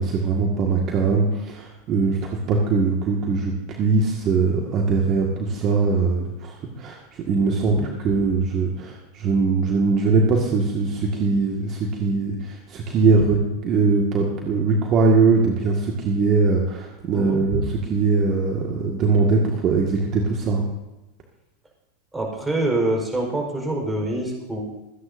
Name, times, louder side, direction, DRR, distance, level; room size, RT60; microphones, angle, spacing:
voice 1, 0.0-20.6, right 4 dB, 40° right, 0 dB, 1.9 m, -21 dB
voice 2, 22.1-24.6, right 2 dB, 10° right, 0 dB, 4.5 m, -25 dB
27.0 x 9.8 x 2.7 m, 1.0 s
hypercardioid pair, 110°, 0 cm